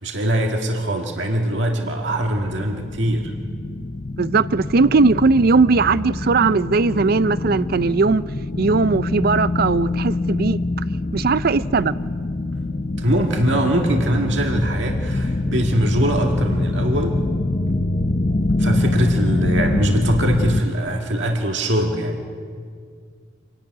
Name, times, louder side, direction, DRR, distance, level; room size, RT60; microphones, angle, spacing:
voice 1, 0.0-3.3 13.0-17.2 18.6-22.2, right 1 dB, 75° right, 2 dB, 1.9 m, -22 dB
sound 1, 1.7-20.6, left 2 dB, 35° left, 0.6 m, -24 dB
voice 2, 4.2-8.2 8.6-10.6 11.1-12.0, right 4 dB, 55° right, 16 dB, 0.5 m, -18 dB
26.0 x 12.0 x 9.4 m, 2.1 s
head